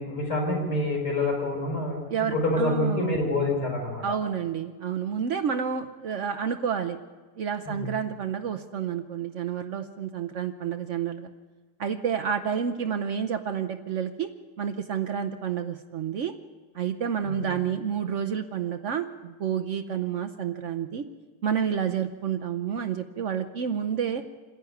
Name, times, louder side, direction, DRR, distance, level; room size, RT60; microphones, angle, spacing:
voice 1, 0.0-2.0 2.3-4.2 7.7-7.9 17.3-17.5, left 2 dB, 80° left, -1 dB, 5.7 m, -27 dB
voice 2, 2.1-3.2 4.0-7.0 7.4-11.3 11.8-14.3 14.6-16.3 16.7-21.0 21.4-24.2, right 8 dB, 90° right, 8 dB, 0.6 m, -29 dB
26.5 x 10.5 x 9.3 m, 1.3 s
omnidirectional pair, 2.3 m